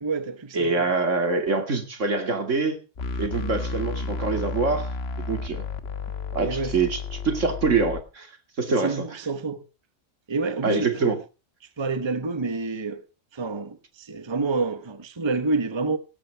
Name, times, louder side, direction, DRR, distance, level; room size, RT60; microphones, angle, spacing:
voice 1, 0.0-0.9 6.4-6.8 8.7-9.6 10.3-11.2 11.8-13.1 13.3-16.0, right 3 dB, 25° right, 1.0 m, -28 dB
voice 2, 0.5-2.8 3.2-4.9 5.2-5.6 6.3-8.3 8.6-9.1 10.6-11.2, right 4 dB, 80° right, 2.7 m, -25 dB
sound 1, 3.0-8.0, left 4 dB, 55° left, 1.5 m, -32 dB
18.0 x 12.5 x 3.4 m
omnidirectional pair, 1.3 m